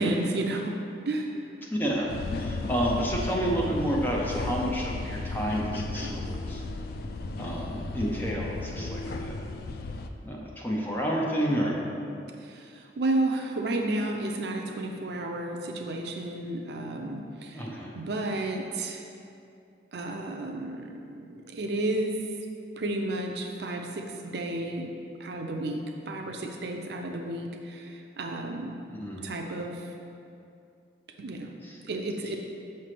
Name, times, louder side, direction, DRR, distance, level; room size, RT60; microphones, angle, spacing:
voice 1, 0.0-1.4 12.4-17.6 17.9-19.0 19.9-22.2 22.8-24.9 25.2-28.7 29.2-29.9 31.2-31.5 31.8-32.4, right 2 dB, 60° right, 2 dB, 0.5 m, -32 dB
voice 2, 1.6-6.6 7.4-9.4 10.2-11.8 17.5-17.9 28.9-29.2 31.6-31.8, equal, 10° left, -3 dB, 0.6 m, -30 dB
sound 1, 2.1-10.1, left 3 dB, 55° left, 0.3 m, -34 dB
6.0 x 3.2 x 5.8 m, 2.5 s
head